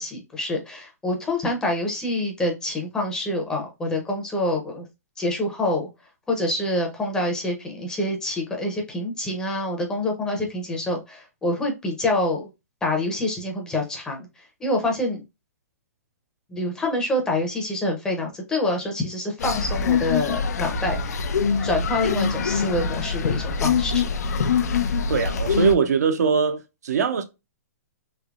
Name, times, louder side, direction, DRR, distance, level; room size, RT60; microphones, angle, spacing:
voice 1, 0.0-4.8 5.2-5.9 6.3-12.4 12.8-14.3 14.6-15.2 16.5-21.3 21.6-24.1, left 1 dB, 10° left, 0.6 m, -26 dB
sound 1, 19.4-25.7, left 5 dB, 75° left, 0.5 m, -24 dB
voice 2, 25.1-27.2, right 6 dB, 80° right, 0.6 m, -22 dB
3.3 x 2.8 x 2.4 m
hypercardioid pair, 155°, 9 cm